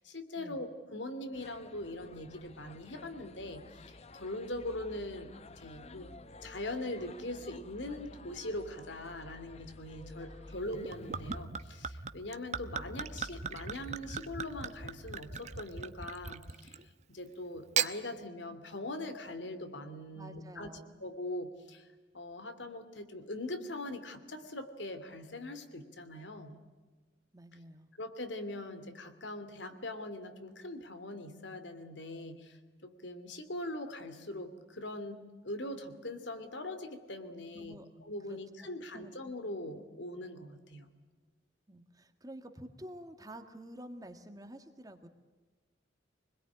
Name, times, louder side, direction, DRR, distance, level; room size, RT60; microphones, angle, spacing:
voice 1, 0.0-6.1 6.4-16.8 17.1-20.7 21.0-21.9 22.1-26.6 27.5-27.6 28.0-40.9, left 1 dB, 80° left, 10 dB, 2.7 m, -42 dB
sound 1, 1.3-11.4, left 2 dB, 35° left, 0.8 m, -52 dB
voice 2, 10.2-10.5 20.1-21.0 27.3-27.9 37.5-37.9 38.3-38.4 38.9-39.1 41.7-45.1, right 1 dB, 20° right, 6 dB, 1.5 m, -49 dB
Gurgling / Chink clink / Liquid, 10.7-16.9 17.6-18.0, right 6 dB, 40° right, 1.0 m, -38 dB
25.5 x 21.5 x 9.9 m, 1.3 s
head